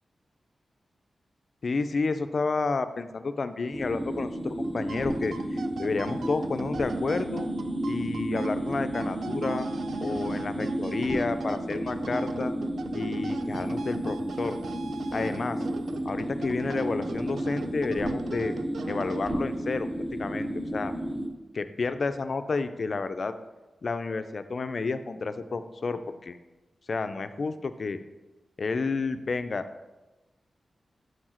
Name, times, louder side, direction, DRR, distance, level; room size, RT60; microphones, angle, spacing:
voice 1, 1.6-7.5 7.9-9.7 10.0-12.5 12.9-14.6 15.1-15.6 16.1-18.5 18.9-19.9 20.2-20.9 21.5-23.3 23.8-26.4 26.9-28.0 28.6-29.6, left 4 dB, 45° left, 10 dB, 0.3 m, -30 dB
sound 1, 3.7-21.3, right 1 dB, 10° right, 0.7 m, -32 dB
sound 2, 4.6-19.6, right 5 dB, 75° right, 0.3 m, -42 dB
6.3 x 4.6 x 4.3 m, 1.1 s
wide cardioid pair, 180°, 0 cm